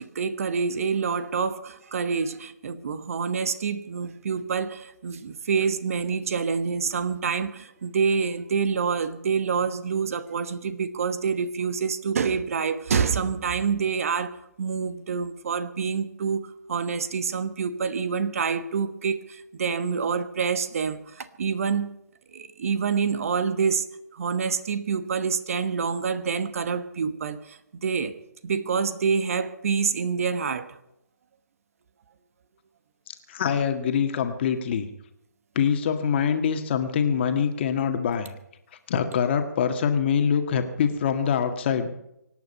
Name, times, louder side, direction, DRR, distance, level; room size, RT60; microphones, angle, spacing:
voice 1, 0.0-22.0 22.3-23.8 24.1-28.1 28.4-30.8, right 6 dB, 50° right, 12 dB, 1.2 m, -27 dB
voice 2, 33.1-34.9 35.6-38.3 38.9-41.9, left 7 dB, 35° left, 7 dB, 1.7 m, -24 dB
24.5 x 9.3 x 5.6 m, 0.84 s
figure-of-eight pair, 150°, 10 cm